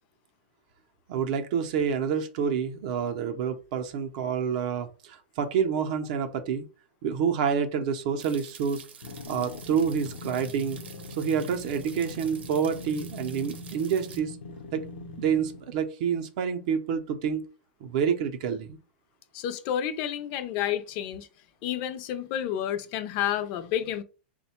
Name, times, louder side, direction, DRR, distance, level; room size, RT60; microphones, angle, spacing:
voice 1, 1.1-6.6 7.0-8.8 9.3-10.8 11.2-14.4 14.7-14.9 15.2-17.5 17.8-18.8, right 7 dB, 45° right, 0.6 m, -28 dB
sound 1, 8.2-14.2, right 7 dB, 85° right, 0.7 m, -48 dB
sound 2, 9.0-15.8, left 2 dB, 90° left, 0.7 m, -42 dB
voice 2, 19.3-21.3 21.6-24.0, left 10 dB, 35° left, 0.5 m, -30 dB
3.5 x 2.2 x 4.3 m
supercardioid pair, 160°, 6 cm